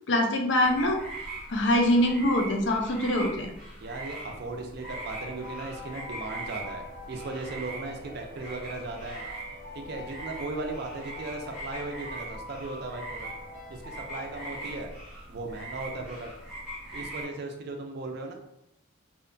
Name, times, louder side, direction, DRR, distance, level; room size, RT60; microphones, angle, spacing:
voice 1, 0.1-1.0 1.5-3.5, left 1 dB, 60° left, 1 dB, 0.4 m, -24 dB
sound 1, 0.6-17.2, right 2 dB, 5° right, 0.6 m, -41 dB
voice 2, 3.8-9.2 9.7-13.3 13.7-14.9 15.3-16.3 16.9-18.3, right 2 dB, 50° right, 3 dB, 0.4 m, -37 dB
sound 2, 4.8-15.2, left 2 dB, 90° left, 1.2 m, -45 dB
2.7 x 2.2 x 2.5 m, 0.82 s
head